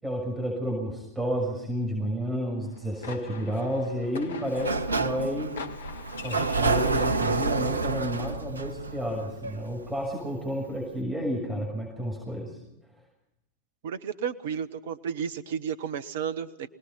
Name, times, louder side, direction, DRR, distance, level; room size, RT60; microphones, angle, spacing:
voice 1, 0.0-5.5 6.2-12.6, equal, 10° right, -1 dB, 6.5 m, -31 dB
sound 1, 2.6-7.7, left 5 dB, 65° left, 1.4 m, -43 dB
Sliding door, 4.4-10.1, right 3 dB, 75° right, 0.8 m, -28 dB
voice 2, 13.8-16.7, right 7 dB, 55° right, 15 dB, 1.1 m, -32 dB
25.0 x 19.0 x 5.8 m, 0.89 s
figure-of-eight pair, 90°, 0 cm